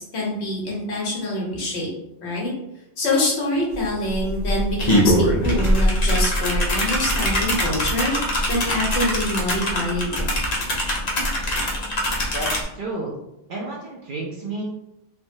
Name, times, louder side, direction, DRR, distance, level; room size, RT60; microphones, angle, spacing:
voice 1, 0.0-1.9 2.2-2.5 3.0-8.1 8.5-10.2, left 1 dB, 65° left, -3 dB, 1.2 m, -25 dB
sound 1, 3.7-3.8 4.1-12.6, equal, 50° left, 0.5 m, -22 dB
voice 2, 12.3-13.1 13.5-14.6, right 2 dB, 60° right, -4 dB, 0.6 m, -31 dB
3.1 x 2.1 x 2.6 m, 0.86 s
omnidirectional pair, 1.2 m